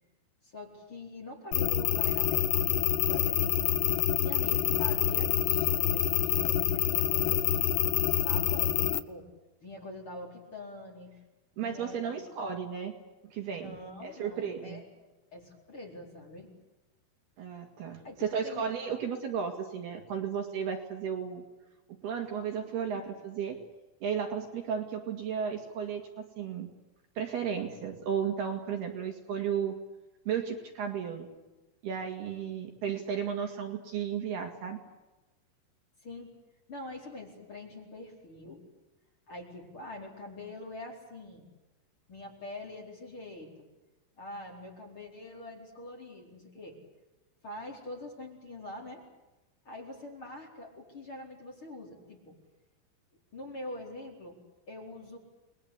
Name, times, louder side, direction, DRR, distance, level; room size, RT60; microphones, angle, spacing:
voice 1, 0.4-2.8 3.1-3.4 4.2-7.4 8.2-9.3 9.6-11.1 11.5-12.3 13.6-14.8 15.3-16.5 18.0-18.7 22.9-23.2 36.0-36.3 36.7-38.6 39.3-41.5 42.1-43.7 44.2-46.8 47.4-49.0 49.6-52.4 53.3-54.4 54.7-55.2, left 2 dB, 25° left, 0 dB, 4.7 m, -44 dB
sound 1, 1.5-9.0, left 11 dB, 70° left, 2.6 m, -27 dB
voice 2, 11.6-13.0 13.2-13.8 14.0-14.8 17.4-21.4 22.0-23.6 24.0-26.7 27.2-29.7 30.3-31.3 31.8-34.8, right 7 dB, 55° right, 3 dB, 3.8 m, -34 dB
30.0 x 21.5 x 8.5 m, 1.1 s
omnidirectional pair, 5.8 m